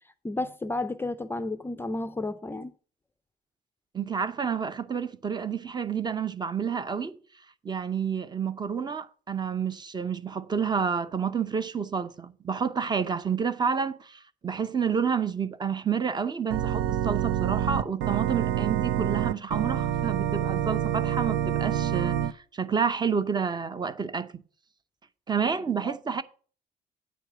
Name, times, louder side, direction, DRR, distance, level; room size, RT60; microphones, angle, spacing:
voice 1, 0.2-2.7 25.8-26.0, left 2 dB, 15° left, 0.4 m, -32 dB
voice 2, 3.9-7.2 7.6-24.3 25.3-26.2, right 6 dB, 25° right, 0.7 m, -29 dB
Organ, 16.5-22.3, right 10 dB, 85° right, 0.6 m, -27 dB
9.2 x 4.5 x 6.7 m
cardioid pair, 110°, 17 cm